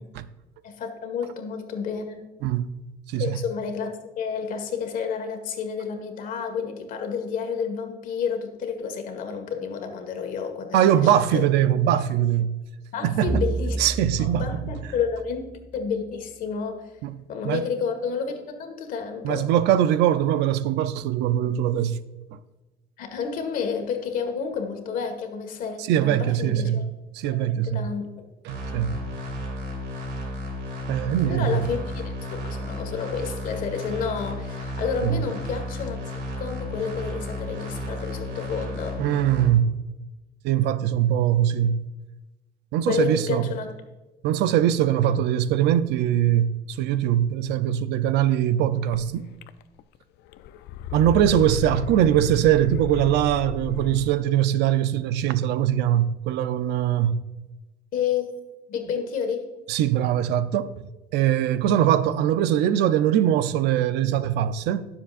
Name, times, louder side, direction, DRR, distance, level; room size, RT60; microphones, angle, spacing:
voice 1, 0.6-2.2 3.2-3.9 4.2-11.5 12.9-13.8 14.2-15.5 15.7-16.8 17.3-19.5 23.0-26.8 27.2-28.1 31.3-39.0 42.9-43.7 57.9-58.3 58.7-59.5 61.7-61.8, left 6 dB, 55° left, 1.6 m, -30 dB
voice 2, 10.7-12.6 13.0-13.4 13.8-14.5 17.0-17.2 17.4-17.7 19.2-22.0 22.3-22.4 25.8-26.8 27.1-27.9 28.4-29.0 30.9-31.7 35.0-35.2 39.0-39.8 40.4-41.8 42.7-43.5 44.2-49.2 50.9-57.2 59.7-60.8 61.1-64.9, right 11 dB, 90° right, 0.6 m, -22 dB
sound 1, 13.3-15.9, right 2 dB, 15° right, 0.7 m, -31 dB
sound 2, 28.5-39.5, left 1 dB, 60° right, 3.1 m, -33 dB
sound 3, 48.9-49.0 49.4-50.0 50.3-54.2, left 9 dB, 80° left, 0.5 m, -34 dB
21.0 x 7.2 x 2.5 m
cardioid pair, 180°, 17 cm